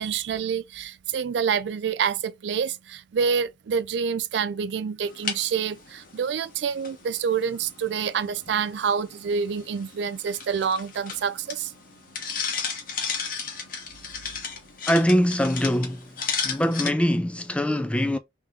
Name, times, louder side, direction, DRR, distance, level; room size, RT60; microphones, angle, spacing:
voice 1, 0.0-11.7, right 6 dB, 70° right, 0.4 m, -27 dB
sound 1, 5.0-16.9, left 6 dB, 50° left, 1.0 m, -35 dB
voice 2, 14.9-16.1 16.4-18.2, equal, 5° left, 0.4 m, -23 dB
3.5 x 2.9 x 3.6 m
head